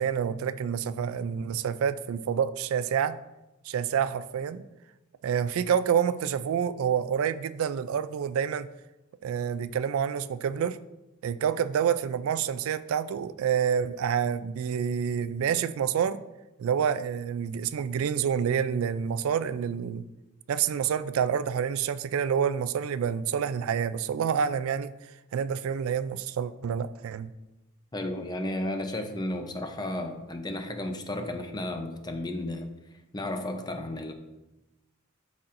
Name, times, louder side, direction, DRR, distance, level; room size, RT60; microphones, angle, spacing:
voice 1, 0.0-3.2 3.7-4.6 5.2-8.7 9.2-10.8 11.2-16.2 16.6-20.0 20.5-24.9 25.3-27.3, right 8 dB, 75° right, 13 dB, 0.3 m, -28 dB
voice 2, 27.9-32.7 33.1-34.1, left 1 dB, 20° left, 6 dB, 0.6 m, -33 dB
11.5 x 4.3 x 2.5 m, 1.0 s
head